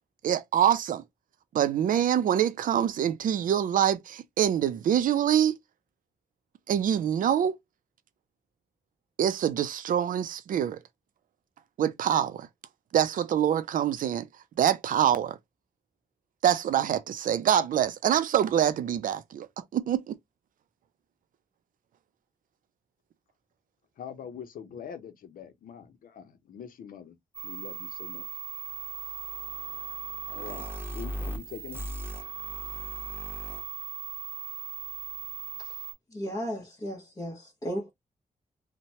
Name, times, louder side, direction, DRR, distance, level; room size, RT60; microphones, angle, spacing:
voice 1, 0.2-1.0 1.5-5.6 6.7-7.6 9.2-10.8 11.8-12.5 12.9-14.3 14.6-15.4 16.4-20.1, right 10 dB, 70° right, 0.4 m, -25 dB
voice 2, 24.0-27.2 27.4-28.3 30.3-31.9, left 8 dB, 85° left, 0.7 m, -43 dB
sound 1, 27.3-35.9, right 5 dB, 15° right, 0.9 m, -37 dB
voice 3, 36.1-37.9, equal, 25° left, 0.9 m, -35 dB
3.0 x 2.1 x 2.7 m
wide cardioid pair, 120°, 14 cm